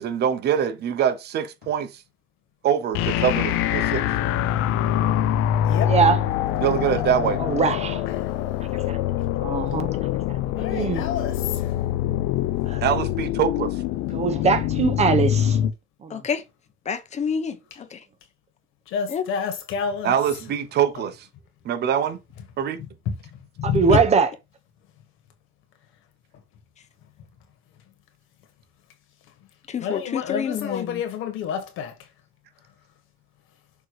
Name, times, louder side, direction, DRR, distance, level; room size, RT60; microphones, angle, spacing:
voice 1, 0.0-1.9 2.6-4.0 6.6-7.4 12.8-13.7 20.0-21.2 21.6-22.2 22.6-22.8, right 8 dB, 50° right, 1.1 m, -24 dB
sound 1, 2.9-15.7, left 11 dB, 85° left, 0.7 m, -24 dB
voice 2, 5.9-6.2 7.4-8.0 8.9-9.0 9.4-9.9 10.7-11.0 12.7-12.8 14.1-15.6 16.0-16.2 23.6-24.3, right 5 dB, 30° right, 1.1 m, -21 dB
voice 3, 10.6-11.4 18.9-20.1 23.1-23.2 23.6-24.0 29.8-31.9, left 7 dB, 70° left, 1.9 m, -28 dB
voice 4, 16.1-16.4 16.9-18.0 19.1-19.3 23.9-24.0 29.7-31.0, left 6 dB, 35° left, 1.0 m, -28 dB
6.6 x 3.2 x 4.9 m
cardioid pair, 130°, 21 cm